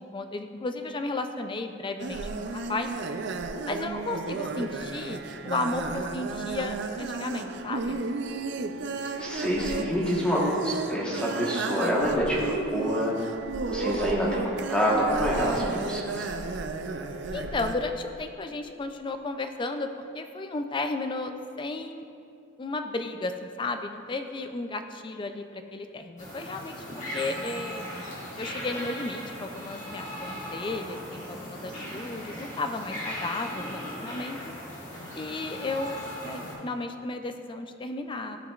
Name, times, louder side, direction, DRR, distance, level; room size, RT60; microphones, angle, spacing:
voice 1, 0.0-2.9 3.7-5.2 5.4-8.0 17.3-19.9 20.1-22.1 22.6-26.8 27.1-27.9 28.4-34.5 35.1-36.0 36.2-38.4, left 2 dB, 25° left, 7 dB, 0.3 m, -33 dB
sound 1, 2.0-17.7, right 3 dB, 60° right, 0.4 m, -33 dB
voice 2, 9.2-13.1 13.7-16.3, equal, 5° left, -6 dB, 1.2 m, -27 dB
sound 2, 26.2-36.5, equal, 40° left, 1.7 m, -38 dB
13.0 x 5.0 x 2.4 m, 2.5 s
head